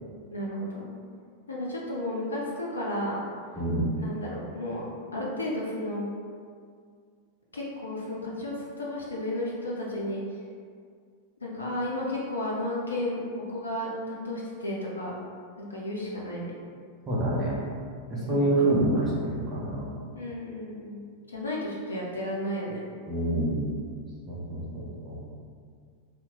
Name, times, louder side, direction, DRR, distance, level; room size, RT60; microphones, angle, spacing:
voice 1, 0.3-0.9 1.5-3.2 4.0-4.9 5.1-6.1 7.5-10.2 11.4-13.2 13.5-15.1 15.6-16.5 18.2-18.5 20.1-21.0 21.3-22.8, left 1 dB, 75° left, -5 dB, 0.5 m, -33 dB
voice 2, 3.5-3.9 17.1-17.6 18.1-19.9 23.1-23.7 24.3-25.2, right 1 dB, 15° right, -8 dB, 0.9 m, -27 dB
2.9 x 2.1 x 3.6 m, 2.1 s
figure-of-eight pair, 90°, 0 cm